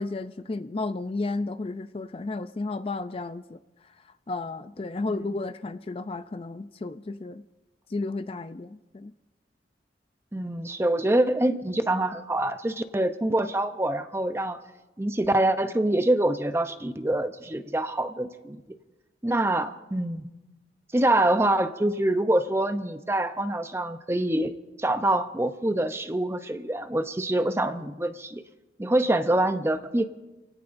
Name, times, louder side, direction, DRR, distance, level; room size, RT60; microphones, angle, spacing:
voice 1, 0.0-3.6 4.3-7.4 7.9-9.1, left 3 dB, 30° left, 11 dB, 0.4 m, -33 dB
voice 2, 10.3-14.6 15.0-18.6 19.2-20.3 20.9-24.5 24.8-28.4 28.8-30.1, right 1 dB, 15° right, 9 dB, 0.6 m, -25 dB
28.0 x 17.0 x 2.6 m, 1.1 s
head